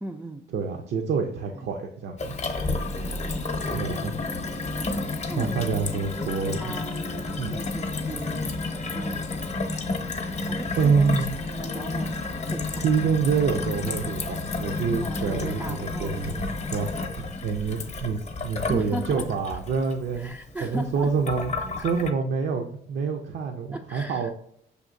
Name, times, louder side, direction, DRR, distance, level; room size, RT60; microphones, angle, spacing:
voice 1, 0.0-0.5 1.5-1.7 3.3-4.2 5.3-8.5 8.9-9.4 10.5-12.1 12.5-12.8 15.0-16.3 18.6-19.6 20.1-21.1 21.8-21.9 23.7-24.3, right 1 dB, 5° right, 3 dB, 0.3 m, -38 dB
voice 2, 0.5-2.4 3.7-4.2 5.4-6.7 7.4-7.6 10.8-11.3 12.8-16.4 16.7-20.4 20.6-24.3, right 5 dB, 65° right, 3 dB, 0.6 m, -27 dB
Gurgling / Water tap faucet / Sink (filling or washing), 2.2-22.1, left 3 dB, 35° left, 0.7 m, -31 dB
sound 1, 4.0-12.0, left 4 dB, 60° left, 0.5 m, -47 dB
6.4 x 2.7 x 2.6 m, 0.69 s
cardioid pair, 90°, 20 cm